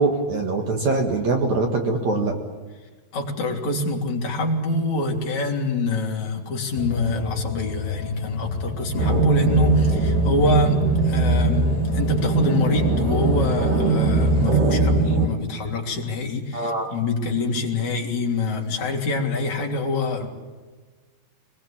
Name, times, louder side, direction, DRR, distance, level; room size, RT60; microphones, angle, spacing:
voice 1, 0.0-2.3 16.5-16.9, right 3 dB, 50° right, 3 dB, 2.8 m, -23 dB
voice 2, 3.1-20.3, left 2 dB, 45° left, 1 dB, 4.2 m, -25 dB
sound 1, 6.8-14.5, left 4 dB, 80° left, 3.4 m, -30 dB
sound 2, 9.0-15.3, right 3 dB, 85° right, 4.1 m, -21 dB
24.0 x 21.0 x 8.9 m, 1.3 s
omnidirectional pair, 4.6 m